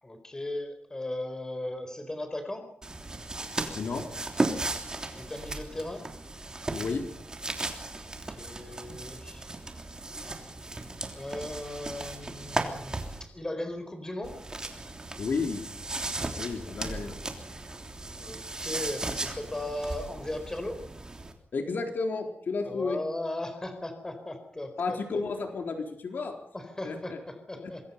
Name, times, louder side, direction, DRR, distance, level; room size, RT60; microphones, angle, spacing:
voice 1, 0.0-2.7 5.2-6.0 8.0-9.5 10.2-10.3 11.1-14.4 16.6-16.7 18.1-20.8 22.6-25.2 26.5-27.8, left 1 dB, 15° left, 7 dB, 4.2 m, -37 dB
sound 1, 2.8-13.2 14.2-21.3, right 2 dB, 20° right, 3.2 m, -36 dB
voice 2, 3.7-4.0 6.7-7.0 15.2-15.6 16.4-17.6 21.5-23.0 24.8-26.4 26.8-27.2 27.6-27.7, left 4 dB, 65° left, 4 dB, 3.9 m, -32 dB
26.0 x 22.0 x 5.6 m, 0.63 s
wide cardioid pair, 165°, 4 cm